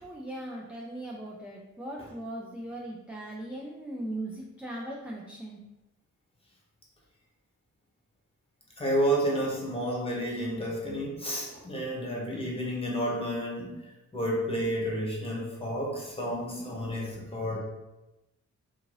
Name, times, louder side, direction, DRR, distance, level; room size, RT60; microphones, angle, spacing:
voice 1, 0.0-5.6, right 1 dB, 5° right, -3 dB, 0.3 m, -39 dB
voice 2, 8.8-17.6, equal, 20° left, -3 dB, 0.8 m, -31 dB
2.6 x 2.6 x 3.0 m, 1.0 s
cardioid pair, 85°, 31 cm